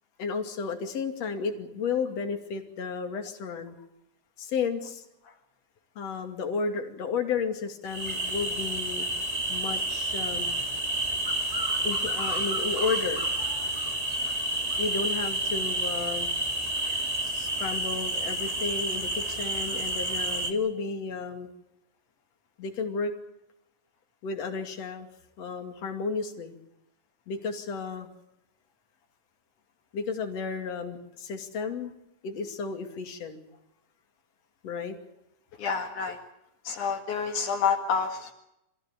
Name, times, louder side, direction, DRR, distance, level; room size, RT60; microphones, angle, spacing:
voice 1, 0.2-3.8 4.4-5.0 6.0-9.1 9.5-10.5 11.8-13.3 14.8-16.3 17.2-21.5 22.6-23.1 24.2-25.1 25.4-26.5 27.3-28.1 29.9-31.9 32.2-33.4 34.6-35.0, left 5 dB, 55° left, 4 dB, 3.6 m, -32 dB
sound 1, 7.9-20.5, right 1 dB, 15° right, 1.8 m, -29 dB
voice 2, 35.6-36.2 36.6-38.3, left 6 dB, 75° left, 2 dB, 3.4 m, -28 dB
25.5 x 15.5 x 8.9 m, 0.86 s
omnidirectional pair, 3.6 m